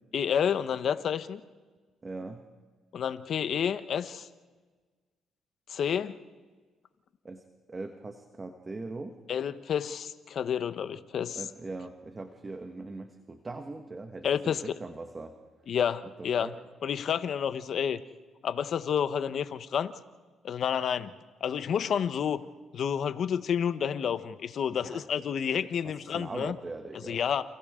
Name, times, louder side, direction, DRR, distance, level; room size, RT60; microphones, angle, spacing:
voice 1, 0.1-1.4 2.9-4.3 5.7-6.2 9.3-11.4 14.2-14.6 15.7-16.5 16.8-18.0 18.4-19.9 20.4-21.1 21.4-22.4 22.7-26.6 27.1-27.4, left 8 dB, 60° left, 11 dB, 1.0 m, -29 dB
voice 2, 2.0-2.4 7.2-7.4 7.7-9.2 11.3-15.3 16.4-16.6 24.8-25.0 25.8-27.4, right 3 dB, 25° right, 6 dB, 1.6 m, -41 dB
29.5 x 29.0 x 3.8 m, 1.4 s
cardioid pair, 90°, 0 cm